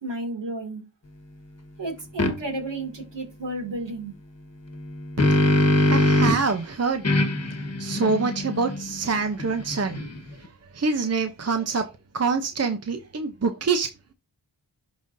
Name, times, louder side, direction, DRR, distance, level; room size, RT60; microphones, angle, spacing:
voice 1, 0.0-0.8 1.8-4.1, right 2 dB, 65° right, 2.5 m, -32 dB
sound 1, 2.2-2.3 4.7-6.5 7.0-10.4, left 1 dB, 35° left, 1.3 m, -23 dB
voice 2, 5.2-10.0 10.3-14.1, right 4 dB, 35° right, 0.7 m, -27 dB
11.0 x 3.9 x 2.6 m
cardioid pair, 50°, 46 cm